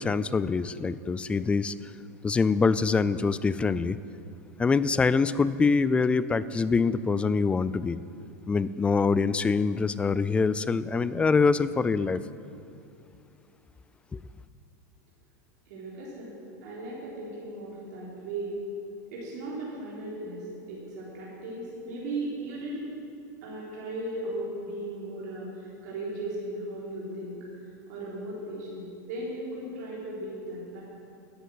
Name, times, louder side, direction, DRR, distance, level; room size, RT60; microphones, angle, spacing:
voice 1, 0.0-1.7 2.2-4.0 4.6-8.0 8.5-12.2 14.1-14.2, left 4 dB, 10° left, 0.3 m, -24 dB
voice 2, 15.7-16.3 16.6-18.6 19.1-22.9 23.4-27.4 27.9-30.8, right 1 dB, 70° right, 3.9 m, -37 dB
12.0 x 8.4 x 7.8 m
supercardioid pair, 135°, 9 cm